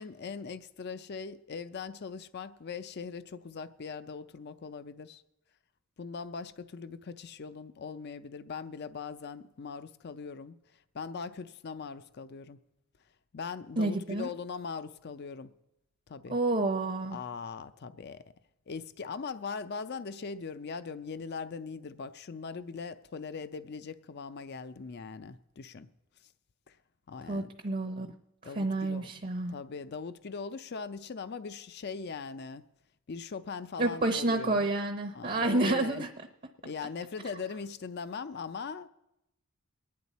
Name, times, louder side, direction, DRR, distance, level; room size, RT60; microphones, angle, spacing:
voice 1, 0.0-5.2 6.0-10.6 10.9-12.6 13.3-15.5 16.1-16.4 17.1-18.3 18.7-25.9 26.7-26.8 27.1-27.5 28.4-29.2 29.5-32.6 33.1-34.7 35.1-36.1 36.6-38.9, left 5 dB, 50° left, 0.5 m, -40 dB
voice 2, 13.8-14.3 16.3-17.2 27.3-28.1 28.5-29.5 33.8-36.1, right 2 dB, 40° right, 0.7 m, -29 dB
23.0 x 9.6 x 4.1 m
head